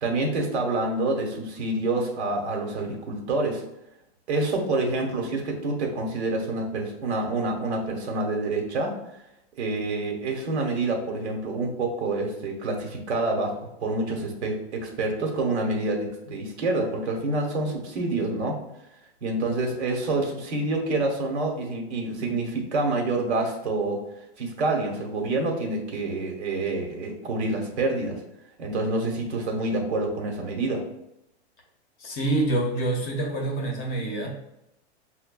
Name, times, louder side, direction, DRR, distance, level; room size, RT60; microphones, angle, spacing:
voice 1, 0.0-3.6 4.3-8.9 9.6-18.6 19.2-24.0 24.4-28.2 28.6-30.8, right 2 dB, 80° right, 1 dB, 1.1 m, -27 dB
voice 2, 32.0-34.3, right 2 dB, 30° left, -1 dB, 0.7 m, -26 dB
5.7 x 2.2 x 2.2 m, 0.84 s
hypercardioid pair, 145°, 33 cm